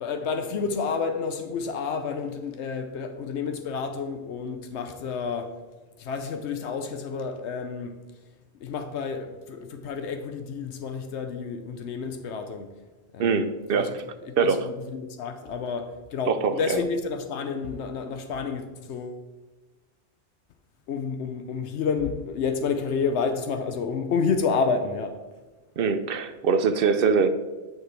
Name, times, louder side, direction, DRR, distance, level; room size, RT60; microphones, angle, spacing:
voice 1, 0.0-5.6 6.0-8.0 8.6-12.7 13.1-13.5 13.7-13.9 14.3-19.2 20.9-25.2, left 5 dB, 85° left, 1.0 m, -30 dB
voice 2, 13.2-14.0 14.4-14.7 16.3-16.8 25.8-27.3, right 5 dB, 60° right, 0.8 m, -23 dB
9.2 x 5.9 x 3.2 m
omnidirectional pair, 1.1 m